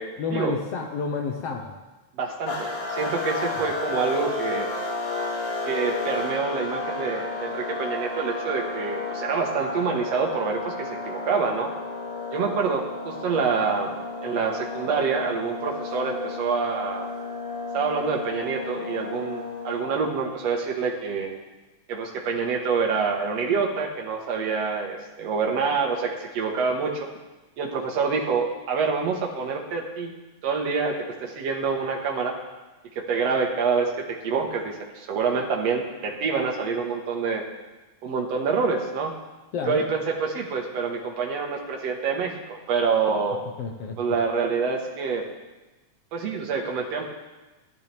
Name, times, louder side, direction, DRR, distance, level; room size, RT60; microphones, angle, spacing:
voice 1, 0.2-1.7 39.5-39.8 43.6-44.0, left 5 dB, 65° left, 2 dB, 1.7 m, -30 dB
voice 2, 2.2-4.7 5.7-11.7 12.3-14.0 14.2-17.1 17.7-21.3 21.9-27.1 27.6-30.1 30.4-32.4 33.0-37.4 38.0-39.1 39.6-43.4 44.0-45.2 46.1-47.0, right 5 dB, 65° right, 1 dB, 2.4 m, -26 dB
sound 1, 2.5-20.3, left 3 dB, 90° left, 3.3 m, -32 dB
14.5 x 12.5 x 3.5 m, 1.1 s
omnidirectional pair, 3.4 m